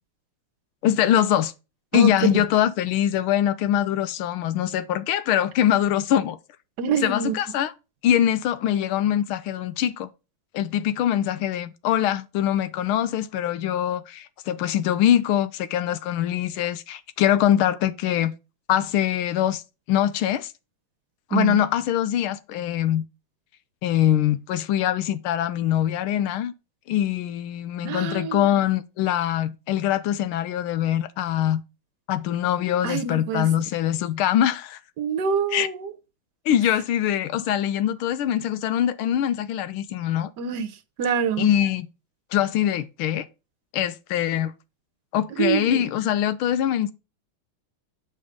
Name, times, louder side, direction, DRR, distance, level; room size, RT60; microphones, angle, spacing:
voice 1, 0.8-1.5 1.9-6.4 7.0-7.7 8.0-10.1 10.5-18.3 18.7-19.6 19.9-20.5 21.3-23.0 23.8-26.5 26.9-31.6 32.1-34.8 35.5-35.7 36.4-40.3 41.4-41.9 42.3-43.3 43.7-44.5 45.1-46.9, left 11 dB, 85° left, 1.5 m, -23 dB
voice 2, 6.8-7.3 21.3-21.6 27.8-28.6 32.8-33.5 35.0-35.9 40.4-40.7 41.0-41.5 45.4-45.8, right 7 dB, 60° right, 1.3 m, -25 dB
7.1 x 4.9 x 4.9 m
omnidirectional pair, 2.3 m